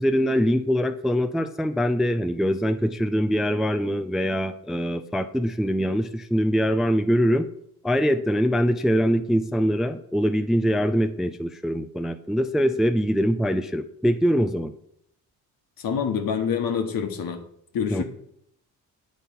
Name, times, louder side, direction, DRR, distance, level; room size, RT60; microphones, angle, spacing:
voice 1, 0.0-7.5 7.8-14.7 17.9-18.0, equal, ahead, 9 dB, 0.4 m, -23 dB
voice 2, 15.8-17.4 17.7-18.0, left 7 dB, 60° left, 6 dB, 1.2 m, -26 dB
8.2 x 4.0 x 5.5 m, 0.72 s
supercardioid pair, 60°, 38 cm